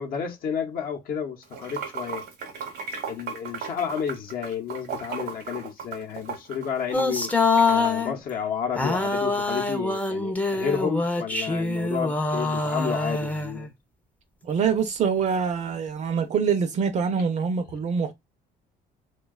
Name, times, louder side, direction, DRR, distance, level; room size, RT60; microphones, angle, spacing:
voice 1, 0.0-2.3 3.1-7.3 7.7-13.7, left 7 dB, 60° left, 0.7 m, -31 dB
Water / Sink (filling or washing), 1.4-7.9, right 6 dB, 70° right, 0.8 m, -36 dB
sound 1, 6.9-8.1 8.8-13.7, left 3 dB, 10° left, 0.5 m, -25 dB
voice 2, 14.4-18.1, right 6 dB, 45° right, 0.5 m, -25 dB
2.6 x 2.2 x 2.2 m
cardioid pair, 110°, 17 cm